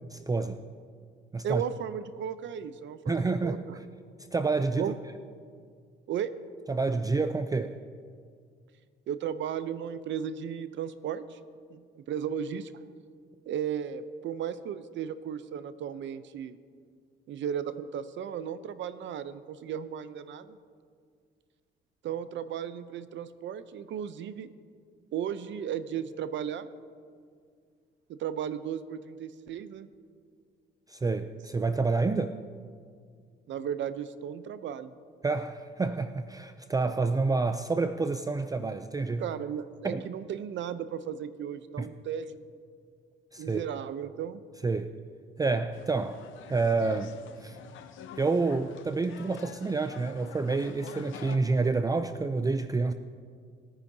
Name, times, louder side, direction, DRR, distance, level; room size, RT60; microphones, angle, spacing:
voice 1, 0.1-0.6 1.3-1.6 3.1-3.6 4.3-4.9 6.7-7.8 30.9-32.4 35.2-39.2 39.8-40.0 41.8-41.9 43.3-43.7 44.6-44.9 45.4-46.2 46.5-47.1 47.4-47.6 48.2-52.9, right 3 dB, 20° right, 9 dB, 0.4 m, -28 dB
voice 2, 1.4-3.8 4.8-4.9 6.1-6.4 9.1-11.4 11.7-12.8 13.5-16.6 17.3-20.6 22.0-24.5 25.1-26.7 28.1-29.9 33.5-34.9 39.2-42.5 43.4-44.4, right 8 dB, 70° right, 13 dB, 0.6 m, -35 dB
sound 1, 45.7-51.4, left 8 dB, 80° left, 0.8 m, -47 dB
21.0 x 10.0 x 2.7 m, 2.1 s
cardioid pair, 90°, 20 cm